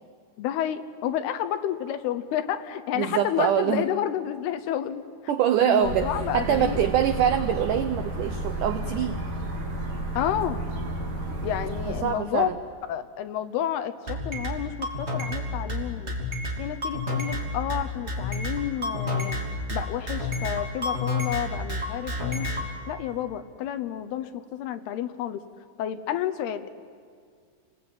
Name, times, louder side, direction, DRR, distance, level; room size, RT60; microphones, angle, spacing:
voice 1, 0.4-5.0 5.6-6.8 10.2-10.7 11.4-12.5 12.9-16.2 16.6-19.4 19.7-22.5 22.9-25.4 25.8-26.7, left 10 dB, 75° left, 10 dB, 2.8 m, -30 dB
voice 2, 2.9-3.8 5.3-9.2 11.9-12.6, right 10 dB, 85° right, 8 dB, 1.8 m, -24 dB
sound 1, 5.8-12.0, right 1 dB, 55° right, 5.1 m, -32 dB
sound 2, 14.1-22.6, left 2 dB, 20° right, 2.6 m, -29 dB
29.0 x 21.0 x 8.9 m, 2.1 s
omnidirectional pair, 4.8 m